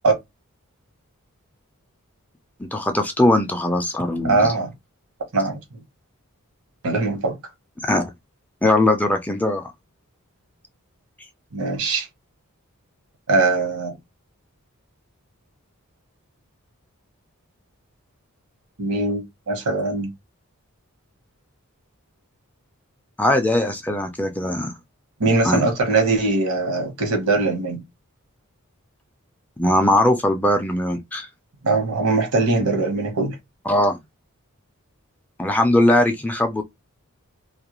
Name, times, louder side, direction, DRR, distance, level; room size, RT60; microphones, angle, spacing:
voice 1, 2.6-4.5 7.8-8.1 8.6-9.7 23.2-24.7 25.4-25.6 29.6-31.3 33.7-34.0 35.4-36.6, left 1 dB, 5° left, 0.3 m, -20 dB
voice 2, 4.2-4.7 5.3-5.6 6.8-7.4 11.5-12.1 13.3-14.0 18.8-20.1 25.2-27.8 31.6-33.4, right 3 dB, 85° right, 1.0 m, -21 dB
2.3 x 2.1 x 2.9 m
head